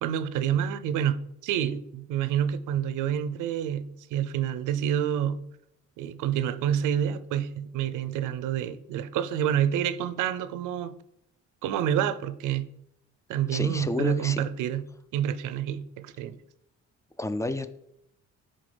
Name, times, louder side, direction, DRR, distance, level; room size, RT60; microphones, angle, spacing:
voice 1, 0.0-5.4 6.0-10.9 11.6-12.7 13.3-14.8 15.1-16.4, right 9 dB, 90° right, 0.5 m, -28 dB
voice 2, 13.5-14.4 17.2-17.8, left 2 dB, 10° left, 0.3 m, -30 dB
9.8 x 3.8 x 3.3 m
cardioid pair, 90°, 30 cm